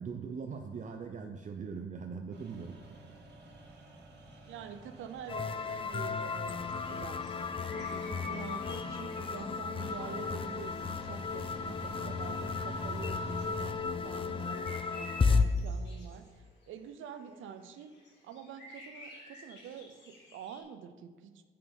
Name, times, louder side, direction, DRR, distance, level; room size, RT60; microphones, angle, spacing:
voice 1, 0.0-2.8 3.0-3.1 8.8-8.9, right 5 dB, 40° right, 4 dB, 0.7 m, -41 dB
sound 1, 2.3-15.9, right 1 dB, 60° right, 2.0 m, -48 dB
voice 2, 4.5-7.3 7.8-16.3 16.7-18.0 18.2-21.4, right 7 dB, 80° right, 10 dB, 0.7 m, -47 dB
sound 2, 5.3-15.4, left 5 dB, 25° left, 0.5 m, -34 dB
sound 3, 6.6-11.0 11.3-11.4 11.6-11.7 12.0-20.6, left 1 dB, 60° left, 2.8 m, -52 dB
6.6 x 5.5 x 6.9 m, 1.5 s
cardioid pair, 90°, 20 cm